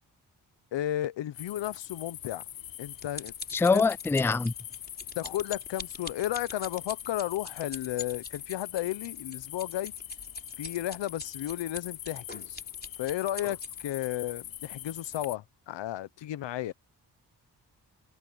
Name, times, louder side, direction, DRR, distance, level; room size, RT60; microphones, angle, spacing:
voice 1, 0.7-2.4 2.8-3.3 3.7-3.8 5.2-9.9 10.6-12.6 13.0-16.7, left 13 dB, 90° left, 0.9 m, -33 dB
sound 1, 1.3-15.4, left 11 dB, 55° left, 0.6 m, -43 dB
sound 2, 2.4-14.1 14.7-14.9 15.2-15.3, left 3 dB, 20° left, 3.9 m, -44 dB
voice 2, 3.5-4.5, left 4 dB, 5° left, 0.4 m, -24 dB
supercardioid pair, 45°, 43 cm